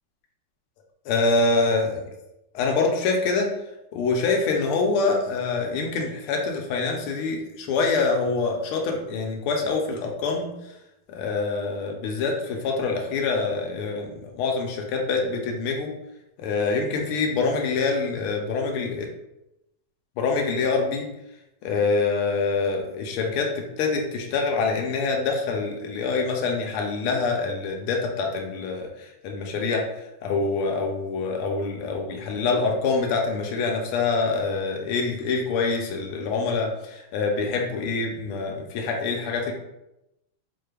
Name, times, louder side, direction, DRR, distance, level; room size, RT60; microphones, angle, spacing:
voice 1, 1.1-2.0 2.5-3.5 3.9-10.5 11.1-15.9 16.4-19.1 20.2-21.1 21.6-29.9 30.2-39.5, left 4 dB, 85° left, 1 dB, 1.5 m, -25 dB
4.8 x 2.2 x 3.2 m, 0.90 s
omnidirectional pair, 2.3 m